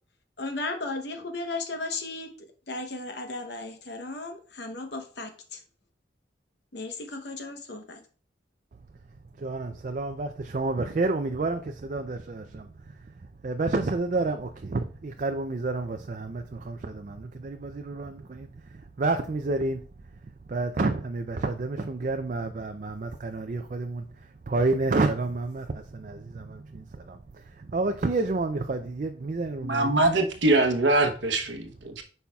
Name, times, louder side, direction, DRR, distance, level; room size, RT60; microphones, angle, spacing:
voice 1, 0.4-2.3 2.7-5.6 6.7-8.0, left 2 dB, 60° left, 0.9 m, -35 dB
voice 2, 9.4-13.0 13.4-19.8 20.5-29.9, right 3 dB, 40° right, 0.4 m, -30 dB
voice 3, 29.6-32.0, right 2 dB, 75° right, 0.9 m, -23 dB
8.5 x 5.5 x 2.3 m
head